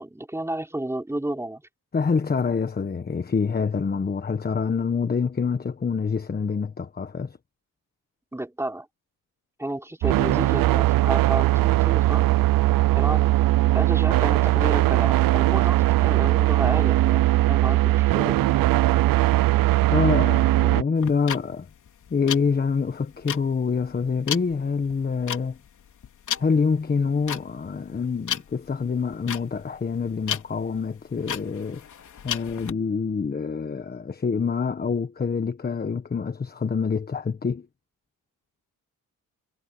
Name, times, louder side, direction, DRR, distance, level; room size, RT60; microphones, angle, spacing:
voice 1, 0.0-1.6 8.3-8.9 9.6-12.2 13.0-13.3 13.7-17.2 17.5-18.4, right 1 dB, 5° right, 4.6 m, -31 dB
voice 2, 1.9-7.4 19.9-21.7 22.1-25.6 26.4-31.8 32.2-37.7, left 5 dB, 25° left, 1.2 m, -26 dB
sound 1, 10.0-20.8, right 18 dB, 70° right, 0.6 m, -20 dB
sound 2, 21.0-32.7, left 8 dB, 60° left, 3.6 m, -34 dB
cardioid pair, 120°, 35 cm